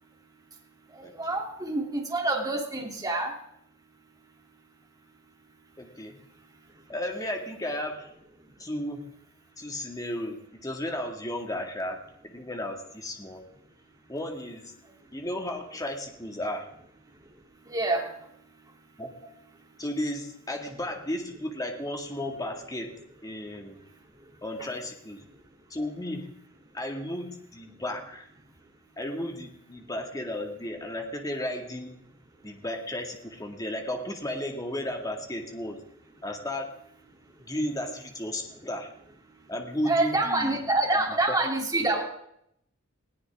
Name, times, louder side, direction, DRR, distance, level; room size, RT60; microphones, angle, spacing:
voice 1, 1.0-3.3 17.7-18.0 39.8-42.0, right 2 dB, 20° right, -1 dB, 3.1 m, -26 dB
voice 2, 5.8-6.2 6.9-8.1 8.6-9.0 9.6-13.4 14.1-14.7 15.1-16.7 19.0-19.4 19.8-22.9 23.2-23.8 24.4-25.2 25.7-26.3 26.7-28.3 29.0-32.0 32.4-35.8 36.2-36.8 37.5-38.9 39.5-40.6 40.9-41.4, left 1 dB, 20° left, 3 dB, 2.1 m, -34 dB
20.5 x 17.0 x 3.7 m, 0.73 s
head